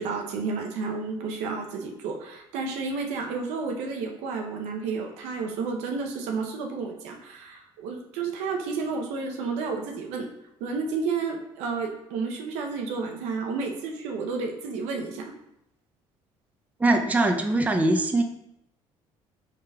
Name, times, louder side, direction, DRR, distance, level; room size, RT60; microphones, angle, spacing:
voice 1, 0.0-10.3 10.6-15.3, right 4 dB, 85° right, 3 dB, 0.6 m, -31 dB
voice 2, 16.8-18.2, right 2 dB, 15° right, 4 dB, 0.4 m, -22 dB
4.9 x 3.3 x 2.2 m, 0.81 s
supercardioid pair, 85°, 11 cm